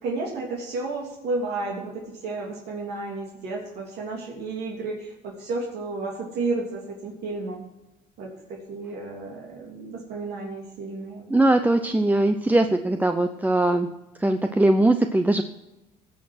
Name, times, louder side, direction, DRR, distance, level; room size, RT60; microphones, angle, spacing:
voice 1, 0.0-7.6 8.2-11.3, right 3 dB, 80° right, -2 dB, 3.1 m, -32 dB
voice 2, 11.3-13.9 14.2-15.4, right 2 dB, 10° right, 7 dB, 0.7 m, -20 dB
17.5 x 6.4 x 6.2 m, 0.96 s
cardioid pair, 110°, 17 cm